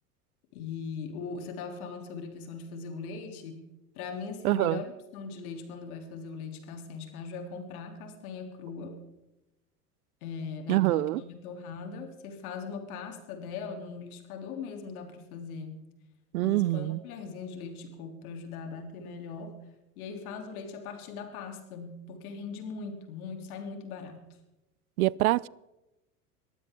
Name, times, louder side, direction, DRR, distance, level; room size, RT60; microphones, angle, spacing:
voice 1, 0.5-3.7 3.9-4.9 5.1-9.0 10.2-15.7 16.4-19.6 20.0-24.3, left 5 dB, 65° left, 3.5 m, -40 dB
voice 2, 4.4-4.8 10.7-11.2 16.3-17.0 25.0-25.5, right 18 dB, 70° right, 0.6 m, -25 dB
21.5 x 15.0 x 3.7 m
hypercardioid pair, 85°, 46 cm